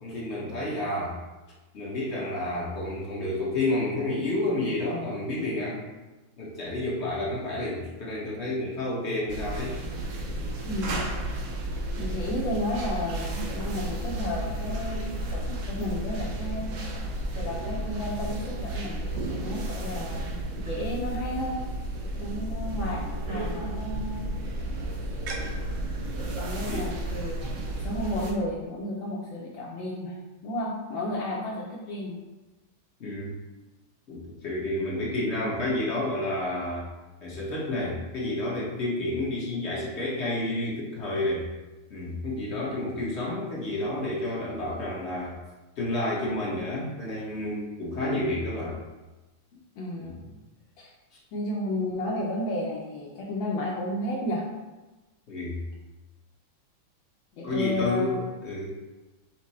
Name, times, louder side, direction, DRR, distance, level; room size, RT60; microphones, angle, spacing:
voice 1, 0.0-1.2 1.7-5.8 6.4-9.7 26.7-26.9 33.0-33.4 34.1-36.9 37.2-41.5 41.9-45.4 45.8-48.8 50.0-50.3 55.3-55.6 57.4-58.7, left 1 dB, 45° left, -5 dB, 1.0 m, -30 dB
sound 1, 9.3-28.3, right 1 dB, 80° right, 0.7 m, -32 dB
voice 2, 10.7-11.1 12.0-16.8 17.3-21.6 22.2-24.2 26.4-30.2 30.4-32.2 49.8-50.2 50.8-50.9 51.3-54.4 57.4-58.3, left 1 dB, 75° left, -3 dB, 1.4 m, -32 dB
6.1 x 2.1 x 4.1 m, 1.1 s
omnidirectional pair, 2.2 m